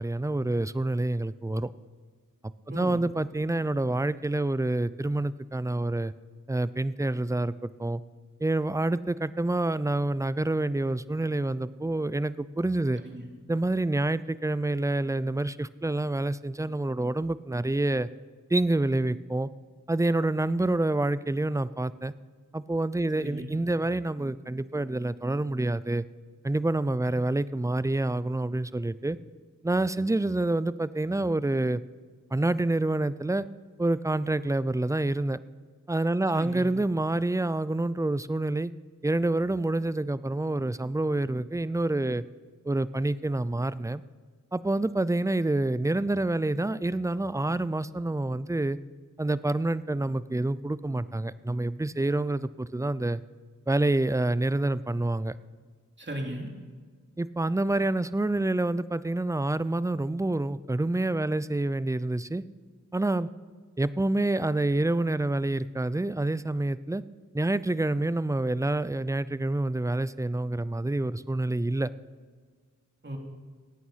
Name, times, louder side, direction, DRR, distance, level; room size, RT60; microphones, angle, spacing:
voice 1, 0.0-1.7 2.7-6.1 6.5-8.0 8.4-13.0 13.5-18.1 18.5-19.5 19.9-22.1 22.5-26.0 26.4-29.2 29.6-31.8 32.3-33.5 33.8-35.4 35.9-38.7 39.0-42.2 42.7-44.0 44.5-48.8 49.2-53.2 53.7-55.3 57.2-62.4 62.9-63.3 63.8-67.0 67.3-71.9, right 2 dB, 10° right, 17 dB, 0.4 m, -27 dB
voice 2, 2.7-3.1 13.0-13.3 23.1-23.5 27.1-27.2 36.3-36.6 56.0-56.5 73.0-73.2, right 1 dB, 35° right, 1 dB, 2.9 m, -37 dB
17.0 x 9.1 x 5.7 m, 1.5 s
cardioid pair, 40°, 32 cm